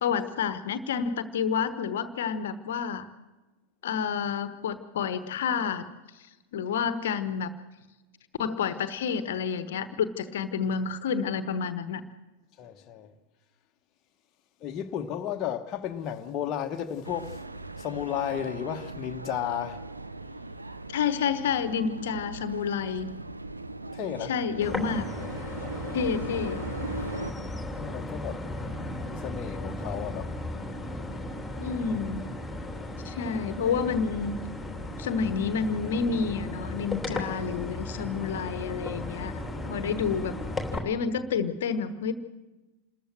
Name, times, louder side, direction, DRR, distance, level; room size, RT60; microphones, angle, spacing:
voice 1, 0.0-3.1 3.8-5.9 6.5-7.5 8.4-12.0 20.9-23.1 24.3-25.1 25.9-26.6 31.6-32.2 33.0-34.4 35.0-40.4 40.8-42.1, left 6 dB, 60° left, 1.1 m, -29 dB
voice 2, 12.6-13.1 14.6-19.9 23.9-24.3 27.7-28.5 29.0-30.4, left 9 dB, 35° left, 1.1 m, -33 dB
sound 1, 17.0-27.3, right 2 dB, 80° right, 0.8 m, -39 dB
sound 2, 24.6-40.8, left 1 dB, 5° left, 3.3 m, -36 dB
28.0 x 14.0 x 7.8 m
figure-of-eight pair, 90°, 0 cm